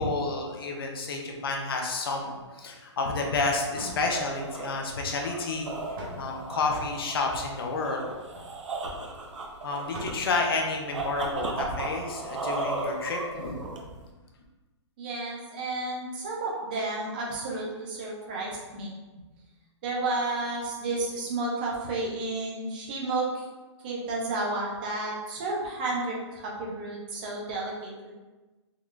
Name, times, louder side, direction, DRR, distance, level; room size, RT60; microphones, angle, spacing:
voice 1, 0.0-5.7 6.2-8.0 9.6-13.7, left 3 dB, 50° left, 1 dB, 0.6 m, -30 dB
sound 1, 3.7-14.1, right 2 dB, 85° right, 0.6 m, -36 dB
sound 2, 3.8-4.5 6.0-6.6 8.1-8.5 9.0-9.1 9.3-9.4 9.9-10.5 10.9-11.0, right 1 dB, 45° right, 0.8 m, -42 dB
voice 2, 15.0-18.9 19.8-23.4 23.8-28.1, right 2 dB, 20° right, -3 dB, 0.4 m, -32 dB
3.7 x 2.2 x 3.1 m, 1.2 s
hypercardioid pair, 175°, 15 cm